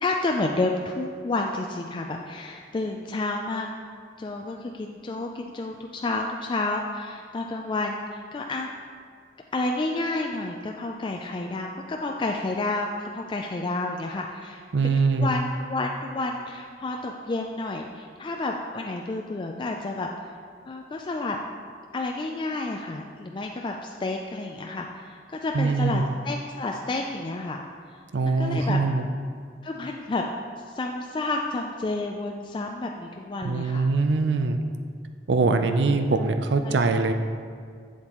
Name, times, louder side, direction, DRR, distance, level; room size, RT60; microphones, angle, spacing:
voice 1, 0.0-3.7 4.2-8.7 9.5-12.9 13.1-14.9 15.2-20.1 20.7-21.4 21.9-27.6 28.3-28.8 29.6-30.2 30.6-33.8 35.9-36.0 36.6-36.8, left 2 dB, 30° left, 1 dB, 0.3 m, -30 dB
voice 2, 14.7-15.3 25.5-26.0 28.1-29.1 33.4-34.6 35.3-37.1, right 3 dB, 90° right, 8 dB, 0.5 m, -23 dB
7.6 x 7.3 x 3.0 m, 2.1 s
head